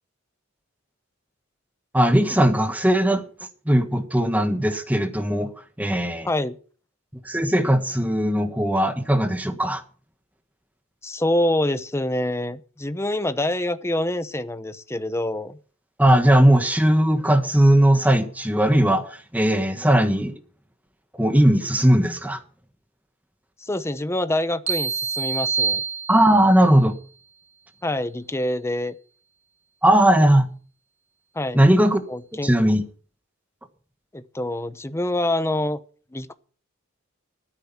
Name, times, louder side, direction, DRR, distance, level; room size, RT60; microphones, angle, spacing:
voice 1, 1.9-3.2 3.6-5.5 5.8-6.3 7.2-9.8 16.0-20.4 21.2-22.4 26.1-27.0 29.8-30.5 31.5-32.0 32.4-32.9, right 1 dB, 10° right, 8 dB, 1.5 m, -18 dB
voice 2, 6.3-6.6 11.0-15.6 23.6-25.8 27.8-28.9 31.3-31.6 32.1-32.5 34.1-35.8 36.1-36.3, left 1 dB, 15° left, 13 dB, 0.8 m, -26 dB
sound 1, 24.7-26.6, right 5 dB, 35° right, 1.2 m, -26 dB
13.5 x 9.7 x 7.2 m, 0.42 s
head